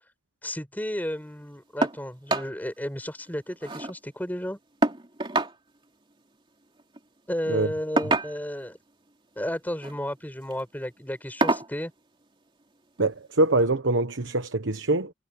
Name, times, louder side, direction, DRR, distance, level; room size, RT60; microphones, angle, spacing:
voice 1, 0.4-4.6 7.3-8.8 9.4-11.9, equal, 10° left, 5.0 m, -33 dB
sound 1, 1.8-2.0 2.3-2.5 2.9-3.0 3.3-3.9 4.8-5.6 6.8-7.0 8.0-8.6 9.7-10.0 10.4-10.6 11.4-11.7 13.0-13.1 13.6-13.7, right 2 dB, 30° right, 2.8 m, -26 dB
voice 2, 13.0-15.1, right 2 dB, 90° right, 1.2 m, -24 dB
head